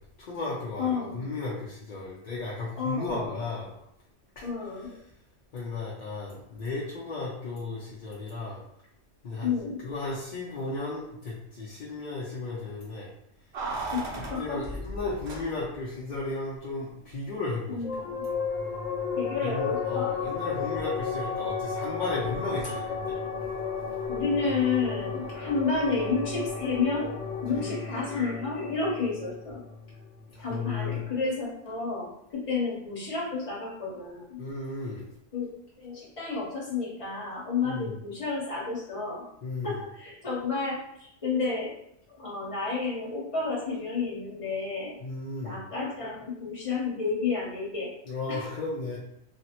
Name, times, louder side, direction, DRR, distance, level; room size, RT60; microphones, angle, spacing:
voice 1, 0.2-3.7 4.4-4.5 5.5-8.6 9.2-9.5 9.8-13.1 14.4-17.8 18.6-18.8 19.4-23.2 27.6-28.1 30.3-31.0 34.4-35.0 37.6-37.9 39.4-39.8 45.0-45.5 48.1-49.0, left 3 dB, 55° left, -6 dB, 0.5 m, -34 dB
voice 2, 0.8-1.2 2.8-3.4 4.4-4.9 9.4-9.8 13.9-14.6 15.0-15.1 17.7-18.2 19.2-20.1 22.6-22.8 24.1-27.1 27.4-29.6 30.4-34.4 35.3-35.5 35.8-39.2 39.6-41.7 42.1-44.9 45.4-47.9 48.3-48.5, left 4 dB, 30° left, -5 dB, 0.9 m, -31 dB
Keys jangling, 13.5-15.9 16.2-16.3, right 2 dB, 65° right, 1.0 m, -36 dB
sound 1, 17.8-30.7, left 5 dB, 80° left, 0.9 m, -33 dB
3.3 x 2.0 x 2.8 m, 0.76 s
omnidirectional pair, 1.2 m